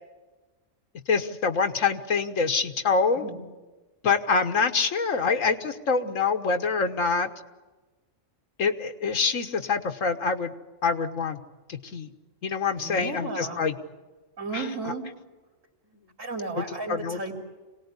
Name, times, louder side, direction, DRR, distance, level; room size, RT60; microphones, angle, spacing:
voice 1, 1.1-3.2 4.0-7.3 8.6-10.5 10.8-11.4 11.7-12.1 12.4-13.8 14.5-14.7 16.6-16.7 16.9-17.2, left 5 dB, 80° left, 7 dB, 1.6 m, -25 dB
voice 2, 12.8-13.6 14.4-15.0 16.2-17.4, right 3 dB, 80° right, 0 dB, 3.5 m, -34 dB
26.5 x 18.5 x 9.7 m, 1.2 s
omnidirectional pair, 1.3 m